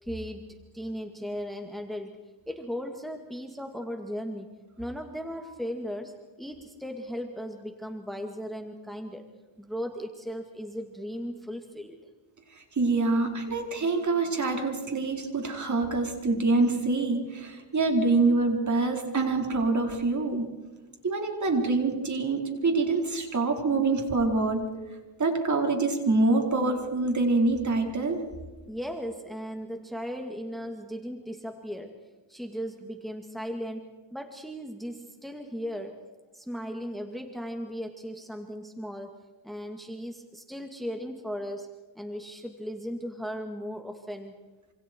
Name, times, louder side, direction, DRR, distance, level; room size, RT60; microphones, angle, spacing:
voice 1, 0.0-2.2 2.5-9.2 9.6-12.0 28.7-31.9 32.3-36.0 36.3-39.2 39.4-41.7 42.0-44.4, equal, ahead, 4 dB, 2.3 m, -37 dB
voice 2, 12.5-20.5 21.0-24.7 25.2-28.3, right 3 dB, 35° right, 2 dB, 4.7 m, -25 dB
27.5 x 27.0 x 4.7 m, 1.2 s
cardioid pair, 85°, 48 cm